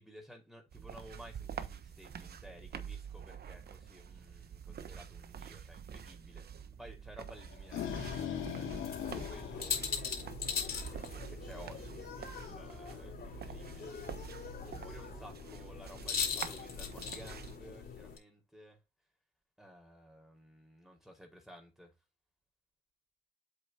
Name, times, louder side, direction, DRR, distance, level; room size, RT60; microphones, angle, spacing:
voice 1, 0.0-6.5 6.8-9.8 10.9-13.9 14.6-18.8 19.6-21.9, equal, ahead, 4.6 m, -55 dB
sound 1, 0.7-17.6, right 8 dB, 55° right, 1.1 m, -47 dB
sound 2, 7.4-10.6, left 8 dB, 80° left, 2.3 m, -40 dB
sound 3, 8.7-18.2, left 6 dB, 50° left, 4.2 m, -40 dB
8.0 x 6.7 x 2.8 m
cardioid pair, 90°, 20 cm